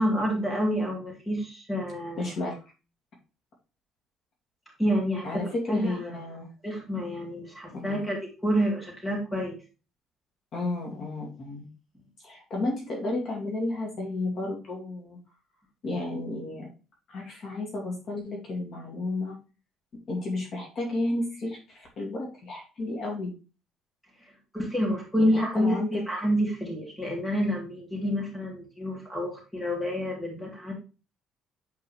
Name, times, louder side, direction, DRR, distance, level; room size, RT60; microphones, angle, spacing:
voice 1, 0.0-2.3 4.8-6.0 6.6-9.6 24.2-30.7, equal, 5° left, -2 dB, 2.8 m, -28 dB
voice 2, 2.2-2.6 5.2-6.5 7.7-8.1 10.5-11.7 12.2-15.2 15.8-16.7 17.1-19.4 20.1-23.3 25.2-26.0, left 2 dB, 40° left, -1 dB, 2.4 m, -32 dB
8.8 x 4.5 x 3.3 m, 0.31 s
cardioid pair, 180°, 0 cm